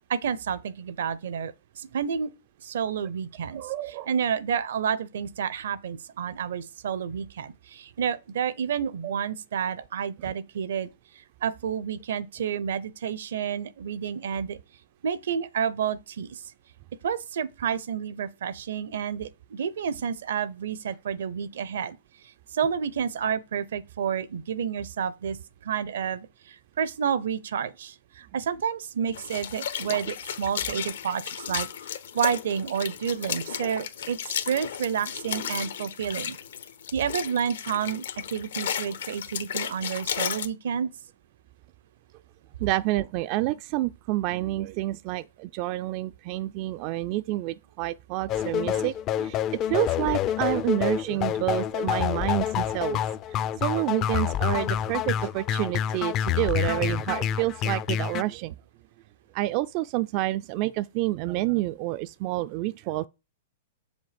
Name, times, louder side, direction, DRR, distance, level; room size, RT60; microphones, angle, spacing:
voice 1, 0.1-2.3 2.6-3.6 4.1-10.9 11.4-14.6 15.0-16.4 17.0-22.0 22.5-25.4 25.6-36.4 36.9-38.0 38.3-40.9, right 7 dB, 75° right, 0.7 m, -30 dB
voice 2, 3.5-4.1 9.0-9.1 10.2-10.3 42.6-49.4 49.7-53.0 53.3-58.5 59.3-63.1, right 17 dB, 45° right, 0.3 m, -29 dB
sound 1, 29.1-40.5, left 9 dB, 80° left, 1.1 m, -34 dB
sound 2, 48.3-58.2, left 11 dB, 35° left, 0.4 m, -27 dB
7.4 x 5.2 x 5.1 m
hypercardioid pair, 130°, 0 cm